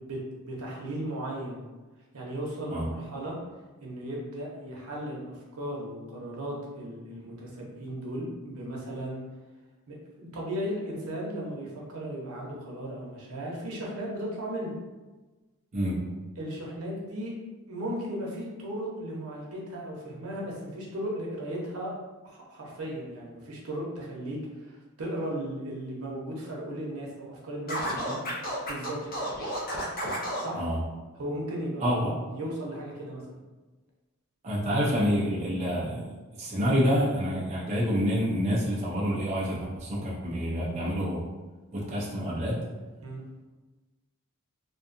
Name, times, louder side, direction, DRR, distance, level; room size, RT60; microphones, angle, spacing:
voice 1, 0.1-1.6 2.1-3.4 3.8-9.2 9.9-14.7 16.4-17.3 17.7-21.9 22.2-28.2 28.7-29.0 30.4-30.6 31.1-31.8 32.2-33.4 43.0-43.2, right 1 dB, 85° right, -3 dB, 0.7 m, -36 dB
Scratching (performance technique), 27.7-30.5, equal, 40° left, 0.6 m, -32 dB
voice 2, 31.8-32.1 34.4-36.1 36.4-41.2 41.7-42.7, equal, 30° right, -5 dB, 0.4 m, -27 dB
2.6 x 2.3 x 2.5 m, 1.2 s
head